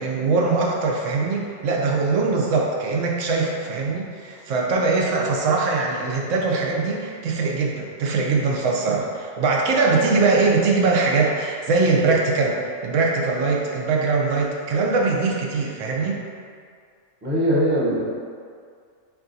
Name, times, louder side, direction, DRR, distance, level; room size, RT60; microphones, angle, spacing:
voice 1, 0.0-16.2, right 3 dB, 80° right, -1 dB, 1.0 m, -22 dB
voice 2, 17.2-18.0, equal, 10° right, -7 dB, 0.7 m, -21 dB
4.7 x 3.8 x 2.6 m, 2.2 s
omnidirectional pair, 1.3 m